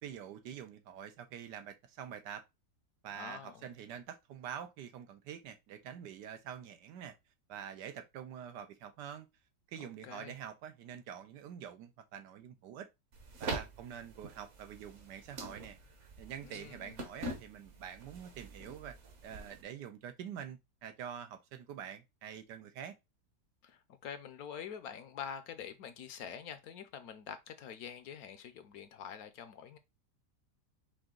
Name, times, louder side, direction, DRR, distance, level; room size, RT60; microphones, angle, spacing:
voice 1, 0.0-2.4 3.0-7.1 7.5-9.3 9.7-12.9 13.4-15.8 16.2-19.0 19.2-23.0, right 9 dB, 85° right, 1.3 m, -46 dB
voice 2, 3.1-3.6 9.8-10.4 16.4-17.0 23.6-29.8, left 8 dB, 70° left, 1.0 m, -46 dB
sound 1, 13.1-19.6, right 2 dB, 50° right, 1.1 m, -45 dB
4.9 x 2.6 x 3.7 m
omnidirectional pair, 1.8 m